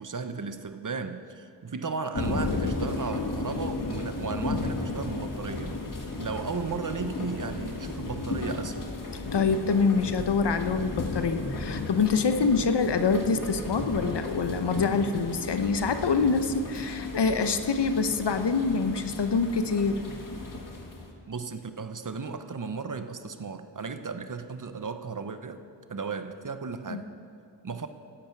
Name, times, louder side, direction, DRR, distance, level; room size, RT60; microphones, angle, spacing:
voice 1, 0.0-5.8 6.2-8.9 21.3-25.6 25.9-27.1 27.6-27.9, right 4 dB, 45° right, 9 dB, 0.9 m, -35 dB
sound 1, 2.1-21.1, left 2 dB, 45° left, 1.9 m, -34 dB
voice 2, 9.1-20.0 26.9-27.1, left 4 dB, 65° left, 9 dB, 1.0 m, -26 dB
15.5 x 11.5 x 4.7 m, 2.7 s
cardioid pair, 50°, 45 cm